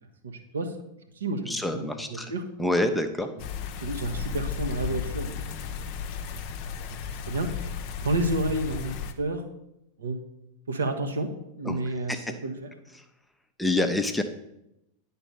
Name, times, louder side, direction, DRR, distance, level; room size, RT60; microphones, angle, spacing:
voice 1, 0.2-0.7 1.2-2.4 3.8-5.4 6.3-6.5 6.8-6.9 7.3-7.6 8.0-9.4 10.0-10.2 10.7-11.3 11.6-12.7, right 2 dB, 70° right, 5 dB, 1.0 m, -30 dB
voice 2, 1.5-2.3 2.6-3.3 11.6-11.8 12.1-12.3 13.6-14.2, left 1 dB, 5° left, 6 dB, 0.7 m, -27 dB
sound 1, 3.4-9.1, left 7 dB, 40° left, 0.7 m, -34 dB
10.0 x 4.0 x 5.5 m, 0.85 s
figure-of-eight pair, 90°, 0 cm